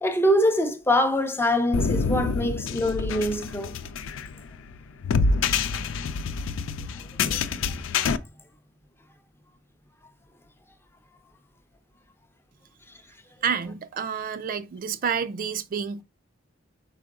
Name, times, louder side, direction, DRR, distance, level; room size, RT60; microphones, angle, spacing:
voice 1, 0.0-3.7 7.3-7.4, left 1 dB, 10° left, 0.5 m, -24 dB
sound 1, 1.7-8.2, left 4 dB, 70° left, 0.4 m, -27 dB
voice 2, 13.4-16.0, right 7 dB, 45° right, 0.4 m, -29 dB
4.8 x 4.6 x 2.3 m
head